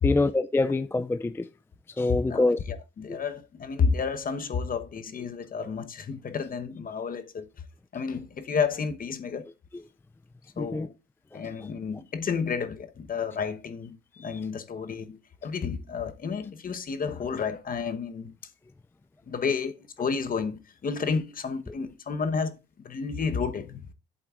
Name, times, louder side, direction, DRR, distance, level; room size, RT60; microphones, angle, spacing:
voice 1, 0.0-1.5 2.0-2.6 10.6-10.9 14.2-14.4, left 2 dB, 10° left, 0.3 m, -25 dB
voice 2, 2.1-7.5 7.9-9.5 10.6-10.9 11.3-18.3 19.3-23.9, left 5 dB, 45° left, 1.1 m, -31 dB
11.0 x 7.7 x 2.5 m
cardioid pair, 90°, 20 cm